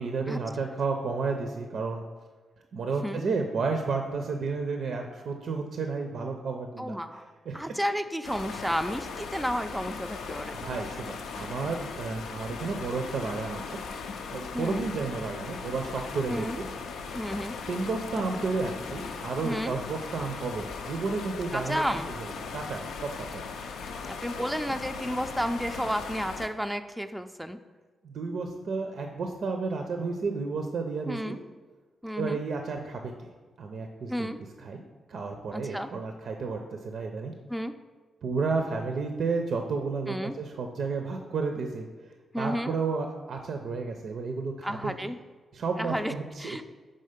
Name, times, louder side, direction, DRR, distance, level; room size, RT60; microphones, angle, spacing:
voice 1, 0.0-2.0 2.7-7.2 7.5-7.7 10.6-13.8 14.3-16.6 17.7-21.8 22.1-23.5 28.0-31.4 32.2-33.3 33.6-34.3 34.6-34.8 35.1-37.3 38.2-41.9 42.4-45.1 45.5-46.6, right 4 dB, 70° right, 4 dB, 0.5 m, -32 dB
voice 2, 6.8-7.2 7.5-10.6 14.5-14.8 16.3-16.6 17.1-17.6 19.4-19.8 21.5-22.1 24.0-27.6 31.1-31.4 32.0-32.4 34.1-34.4 35.5-35.9 37.5-37.7 40.1-40.4 42.3-42.7 44.6-45.2 45.8-46.1 46.4-46.6, equal, 5° right, 7 dB, 0.3 m, -32 dB
sound 1, 8.2-26.5, left 5 dB, 90° left, 0.4 m, -38 dB
5.5 x 3.7 x 5.0 m, 1.4 s
cardioid pair, 70°, 0 cm